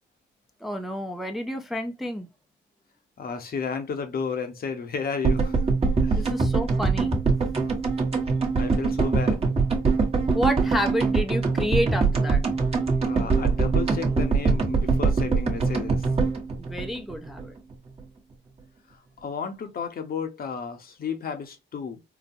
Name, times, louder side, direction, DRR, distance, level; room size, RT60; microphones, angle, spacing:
voice 1, 0.6-2.3 6.2-7.1 10.3-12.4 16.6-17.5, equal, ahead, 0.5 m, -29 dB
voice 2, 3.2-5.7 6.0-6.2 8.6-9.5 13.0-16.1 18.9-22.0, left 6 dB, 50° left, 0.8 m, -33 dB
sound 1, 5.2-17.5 17.7-17.8 18.0-18.1, right 4 dB, 30° right, 1.0 m, -23 dB
3.9 x 2.1 x 2.6 m
cardioid pair, 90°, 20 cm